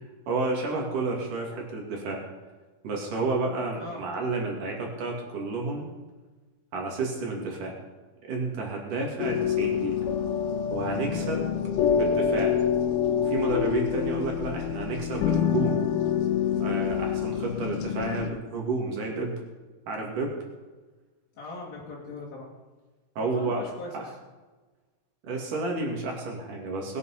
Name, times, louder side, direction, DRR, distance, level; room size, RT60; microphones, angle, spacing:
voice 1, 0.3-2.2 2.8-5.9 6.7-7.8 8.3-10.0 10.7-11.5 11.9-12.6 13.2-15.8 16.6-19.4 19.9-20.4 23.2-23.6 23.9-24.1 25.2-27.0, right 3 dB, 50° right, -1 dB, 3.5 m, -31 dB
sound 1, 9.2-18.3, left 8 dB, 85° left, 3.5 m, -26 dB
voice 2, 21.4-22.5 23.2-24.1, left 3 dB, 45° left, -6 dB, 3.1 m, -39 dB
20.5 x 8.6 x 5.8 m, 1.3 s
omnidirectional pair, 5.5 m